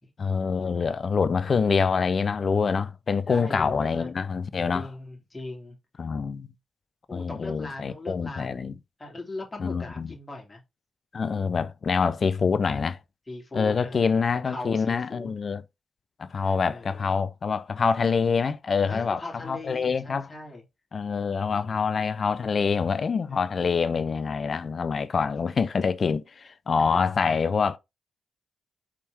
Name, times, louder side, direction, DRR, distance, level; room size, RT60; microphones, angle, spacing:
voice 1, 0.2-4.9 6.0-6.5 7.1-8.7 9.6-10.1 11.1-13.0 13.5-15.6 16.2-19.2 19.5-20.3 20.9-27.8, left 5 dB, 55° left, 0.4 m, -26 dB
voice 2, 3.3-4.1 4.7-5.8 7.1-8.6 9.0-10.6 13.3-15.3 16.4-17.1 18.8-20.6 21.5-21.8 23.3-23.4 25.3-25.4 26.8-26.9, left 2 dB, 30° left, 2.6 m, -40 dB
4.2 x 3.6 x 3.3 m
hypercardioid pair, 40°, 0 cm